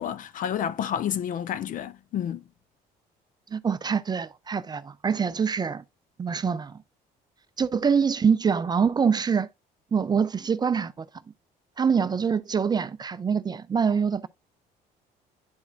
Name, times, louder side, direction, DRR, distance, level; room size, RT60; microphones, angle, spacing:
voice 1, 0.0-2.4, left 9 dB, 55° left, 0.5 m, -30 dB
voice 2, 3.5-5.8 6.2-6.8 7.6-9.5 9.9-11.1 11.8-14.3, right 6 dB, 25° right, 0.4 m, -25 dB
10.5 x 4.1 x 2.4 m
cardioid pair, 110°, 17 cm